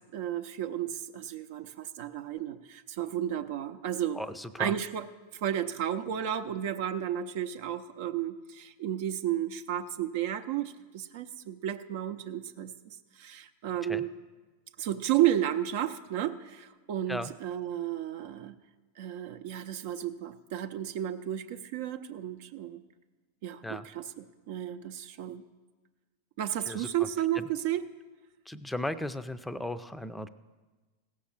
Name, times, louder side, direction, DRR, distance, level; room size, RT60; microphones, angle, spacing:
voice 1, 0.1-4.2 4.6-5.1 5.4-14.1 14.8-18.6 19.0-22.8 23.4-25.4 26.4-27.8, right 11 dB, 60° right, 7 dB, 0.6 m, -33 dB
voice 2, 4.1-4.7 13.8-14.0 17.1-17.3 23.6-23.9 26.7-27.1 27.3-27.4 28.5-30.3, left 1 dB, 5° left, 11 dB, 0.5 m, -36 dB
16.0 x 6.5 x 7.2 m, 1.3 s
hypercardioid pair, 110°, 0 cm